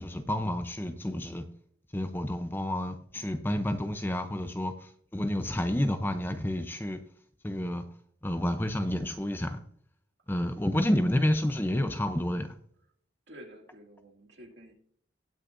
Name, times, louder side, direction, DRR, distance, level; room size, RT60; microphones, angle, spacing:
voice 1, 0.0-1.4 1.9-7.0 7.4-7.8 8.2-9.6 10.3-12.5, left 1 dB, 10° left, 0.6 m, -30 dB
voice 2, 13.3-14.7, equal, 60° right, 2.3 m, -50 dB
19.0 x 6.4 x 2.6 m
head